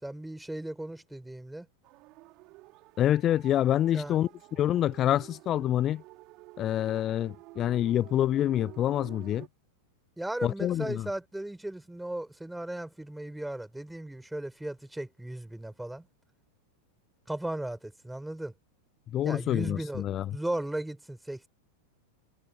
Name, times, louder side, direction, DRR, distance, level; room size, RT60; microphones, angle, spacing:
voice 1, 0.0-1.7 3.9-4.2 10.2-16.1 17.3-18.5 19.2-20.0 20.3-21.5, right 1 dB, 5° right, 6.4 m, -36 dB
sound 1, 1.8-9.5, right 22 dB, 40° right, 3.7 m, -50 dB
voice 2, 3.0-6.0 6.6-9.5 10.4-11.1 19.1-20.3, left 12 dB, 30° left, 0.4 m, -27 dB
figure-of-eight pair, 90°, 0 cm